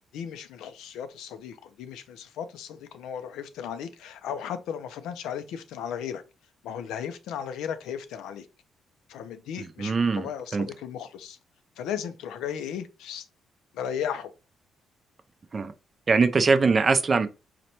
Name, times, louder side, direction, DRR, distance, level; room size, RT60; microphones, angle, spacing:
voice 1, 0.0-6.2 6.6-8.5 9.1-11.4 11.8-13.2 13.7-14.3, left 8 dB, 90° left, 0.4 m, -35 dB
voice 2, 9.8-10.7 15.5-15.7 16.1-17.3, right 4 dB, 35° right, 0.4 m, -22 dB
4.0 x 2.1 x 2.8 m
cardioid pair, 90°, 0 cm